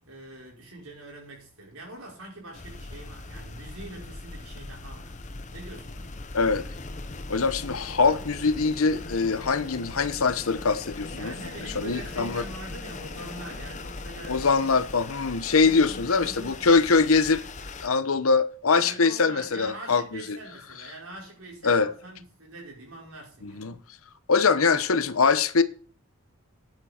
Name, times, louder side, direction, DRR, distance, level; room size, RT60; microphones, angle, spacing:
voice 1, 0.0-5.2 5.5-6.2 11.1-14.8 15.4-16.7 18.7-23.8, right 2 dB, 70° right, 5.2 m, -44 dB
sound 1, 2.5-17.9, left 2 dB, 35° left, 0.8 m, -40 dB
voice 2, 7.3-11.3 11.7-12.4 14.3-17.4 17.8-20.4 21.6-21.9 23.4-23.8 24.3-25.6, left 4 dB, 70° left, 0.9 m, -23 dB
9.8 x 8.8 x 4.4 m
head